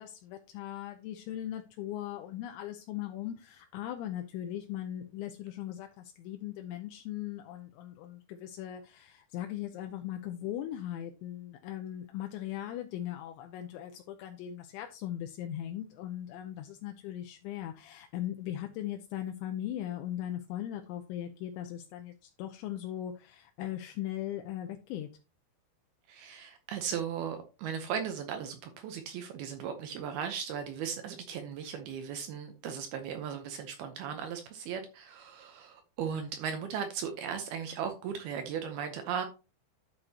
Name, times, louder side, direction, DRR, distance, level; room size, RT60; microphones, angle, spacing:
voice 1, 0.0-25.1, left 12 dB, 80° left, 3.0 m, -39 dB
voice 2, 26.1-39.3, right 7 dB, 75° right, 2.3 m, -37 dB
12.0 x 6.4 x 2.9 m
omnidirectional pair, 5.4 m